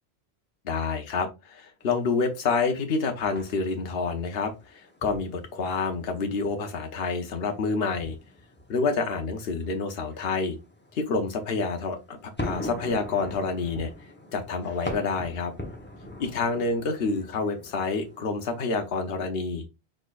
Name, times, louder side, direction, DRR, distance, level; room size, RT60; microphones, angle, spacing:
voice 1, 0.6-8.2 8.7-10.6 10.9-13.9 14.3-15.5 16.2-19.6, left 4 dB, 70° left, 5 dB, 1.0 m, -28 dB
sound 1, 1.8-19.1, left 1 dB, 10° left, 0.8 m, -42 dB
4.9 x 4.2 x 2.4 m, 0.25 s
omnidirectional pair, 1.1 m